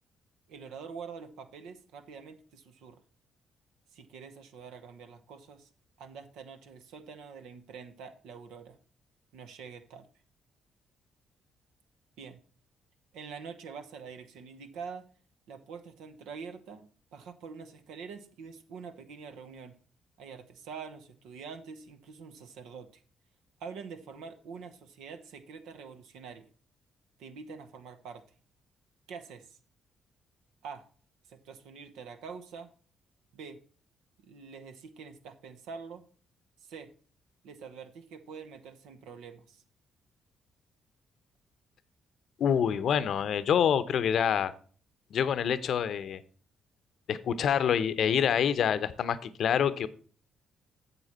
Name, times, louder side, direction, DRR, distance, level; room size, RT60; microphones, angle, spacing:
voice 1, 0.5-3.0 3.9-5.7 6.0-8.8 9.3-10.1 12.2-12.4 13.1-15.1 15.5-19.8 20.2-23.0 23.6-26.5 27.2-28.2 29.1-29.6 30.6-30.9 31.3-32.7 33.3-33.6 34.2-36.0 36.6-36.9 37.4-39.6, right 5 dB, 75° right, 9 dB, 1.0 m, -45 dB
voice 2, 42.4-44.5 45.1-46.2 47.1-49.9, left 8 dB, 65° left, 14 dB, 0.7 m, -26 dB
8.3 x 7.1 x 4.2 m, 0.42 s
hypercardioid pair, 50°, 0 cm